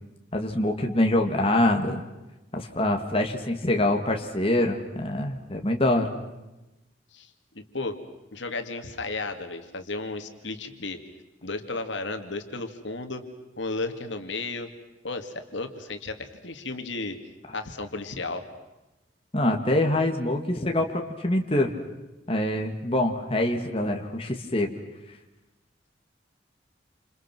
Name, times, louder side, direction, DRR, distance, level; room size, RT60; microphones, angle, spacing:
voice 1, 0.3-2.0 2.5-6.1 19.3-21.7 22.3-24.8, left 1 dB, 30° left, 3 dB, 2.2 m, -25 dB
voice 2, 7.1-8.0 8.3-11.0 11.4-13.3 13.6-14.7 15.0-17.2 17.5-18.5, left 3 dB, 75° left, 6 dB, 2.5 m, -34 dB
29.0 x 28.0 x 6.2 m, 1.0 s
head